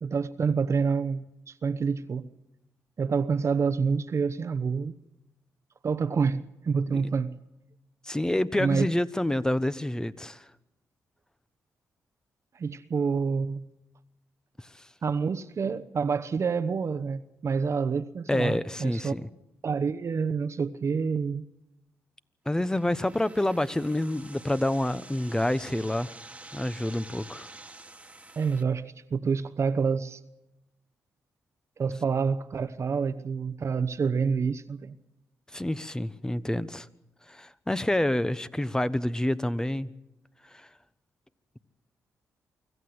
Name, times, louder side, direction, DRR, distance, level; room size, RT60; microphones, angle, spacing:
voice 1, 0.0-2.3 3.0-4.9 5.8-7.4 8.6-8.9 12.5-13.6 15.0-19.1 19.6-21.4 28.4-30.2 31.8-34.9, right 5 dB, 50° right, 1.0 m, -28 dB
voice 2, 8.0-10.4 18.3-19.3 22.5-26.1 26.5-27.5 35.5-36.9 37.3-39.9 40.5-40.7, left 1 dB, 10° left, 1.1 m, -28 dB
sound 1, 22.5-28.6, right 2 dB, 20° right, 1.7 m, -48 dB
25.0 x 15.0 x 8.0 m
cardioid pair, 65°, 6 cm